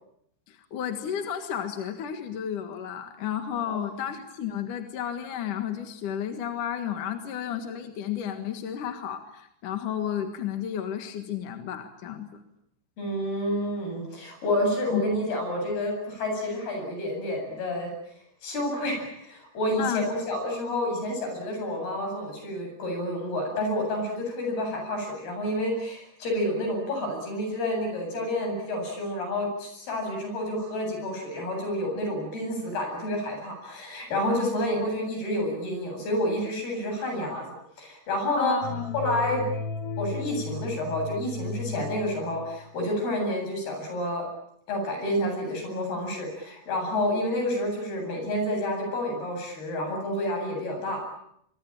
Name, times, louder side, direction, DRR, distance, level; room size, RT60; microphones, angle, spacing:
voice 1, 0.5-12.4 14.9-15.0 19.8-20.1 34.3-34.5 38.4-39.0, left 9 dB, 60° left, 7 dB, 3.0 m, -32 dB
voice 2, 13.0-17.9 18.4-38.6 38.9-39.5 40.0-44.3 44.7-51.0, left 1 dB, 80° left, 3 dB, 10.0 m, -29 dB
sound 1, 38.6-42.7, left 3 dB, 40° left, 3.0 m, -35 dB
24.5 x 24.0 x 8.9 m, 0.72 s
omnidirectional pair, 4.5 m